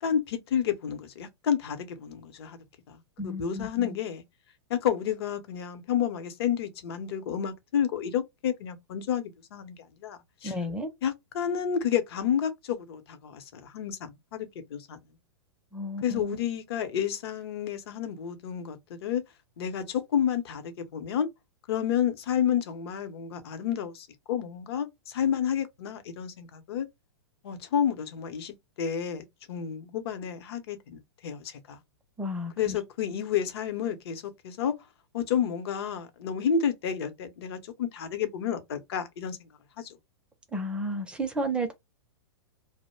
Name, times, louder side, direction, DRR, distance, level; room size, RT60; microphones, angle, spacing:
voice 1, 0.0-2.6 2.9-4.2 4.7-10.6 11.0-15.0 16.0-19.2 19.6-21.3 21.7-26.9 27.4-31.8 32.6-34.7 35.1-39.5 39.8-39.9, left 8 dB, 60° left, 0.8 m, -30 dB
voice 2, 3.2-4.0 10.4-10.9 15.7-16.4 32.2-32.8 40.5-41.7, equal, 5° right, 0.4 m, -32 dB
2.2 x 2.1 x 3.0 m
hypercardioid pair, 130°, 14 cm